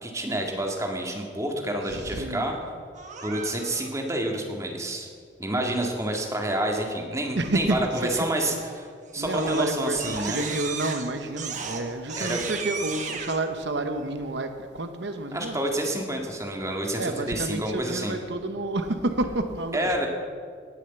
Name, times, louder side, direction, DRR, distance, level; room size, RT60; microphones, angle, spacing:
voice 1, 0.0-2.5 3.2-5.1 5.4-8.9 9.1-10.4 12.2-12.4 15.3-18.2 19.7-20.1, right 1 dB, 15° right, 1 dB, 1.8 m, -28 dB
voice 2, 1.9-2.5 5.6-5.8 7.4-8.3 9.2-15.6 17.0-19.9, right 2 dB, 65° right, 7 dB, 0.9 m, -29 dB
Crying sobbing, 3.0-3.9 8.6-8.9 9.3-13.4, right 5 dB, 40° right, 1.4 m, -35 dB
18.5 x 6.6 x 8.1 m, 2.1 s
head